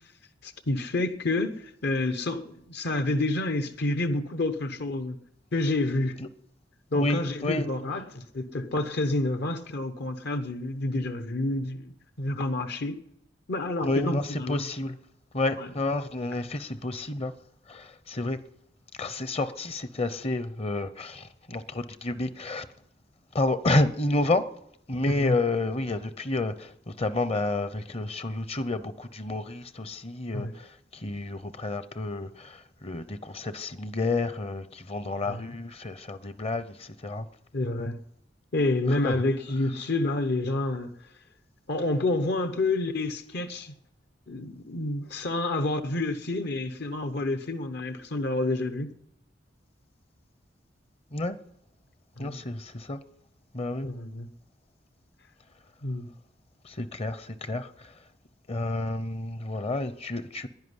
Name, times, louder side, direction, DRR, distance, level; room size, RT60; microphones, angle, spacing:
voice 1, 0.4-5.2 5.5-6.2 6.9-11.9 12.2-13.0 13.5-14.7 15.5-15.7 25.1-25.4 30.3-30.5 35.2-35.6 37.5-38.0 38.5-40.9 41.7-43.7 44.3-48.9 52.2-52.4 53.8-54.3 55.8-56.1, left 2 dB, 60° left, 1.0 m, -29 dB
voice 2, 6.9-7.7 13.8-14.9 15.3-17.3 17.7-18.4 19.0-22.7 23.3-24.5 24.9-26.7 27.0-30.7 31.0-37.2 39.0-39.1 51.1-51.4 52.2-53.0 53.5-53.9 56.6-57.7 58.5-60.5, left 2 dB, 35° left, 0.8 m, -30 dB
10.5 x 10.5 x 9.7 m
head